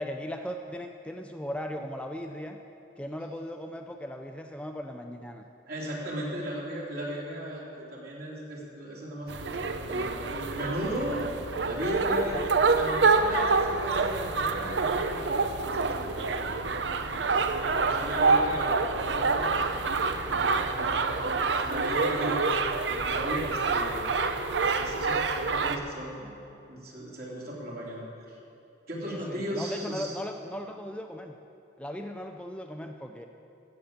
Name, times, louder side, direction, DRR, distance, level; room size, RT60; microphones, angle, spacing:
voice 1, 0.0-2.6 3.0-5.4 29.0-31.4 31.8-33.3, equal, 5° left, 4 dB, 0.4 m, -38 dB
voice 2, 5.7-11.2 11.6-15.6 15.9-17.2 17.8-19.5 20.2-22.5 22.9-24.1 24.8-26.4 26.7-28.4 28.9-30.1, equal, 55° right, -4 dB, 3.2 m, -36 dB
sound 1, 9.3-25.8, right 4 dB, 80° right, 0.7 m, -27 dB
14.5 x 7.2 x 8.7 m, 2.7 s
head